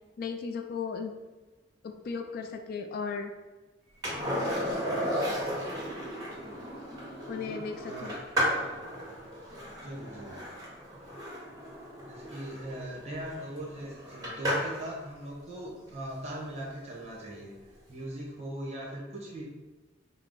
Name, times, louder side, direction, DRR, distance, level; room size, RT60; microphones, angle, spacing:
voice 1, 0.2-1.1 1.8-3.3 7.3-8.2, left 5 dB, 50° left, 5 dB, 0.3 m, -36 dB
Skateboard, 4.0-14.9 17.5-17.6, equal, 20° right, 1.3 m, -34 dB
voice 2, 7.3-8.1 9.8-10.4 12.0-17.5 17.9-19.4, right 1 dB, 35° right, -3 dB, 1.0 m, -40 dB
4.5 x 2.1 x 3.8 m, 1.2 s
head